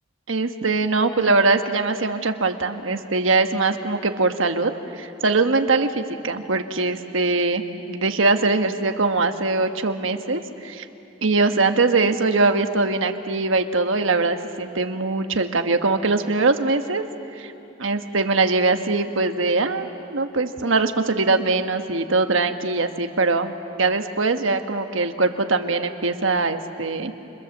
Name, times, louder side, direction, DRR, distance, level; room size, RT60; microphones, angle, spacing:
voice 1, 0.3-7.6 7.9-10.9 11.2-17.0 17.3-17.5 17.8-23.5 23.8-27.1, right 3 dB, 75° right, 6 dB, 1.3 m, -22 dB
29.5 x 27.0 x 7.3 m, 2.9 s
head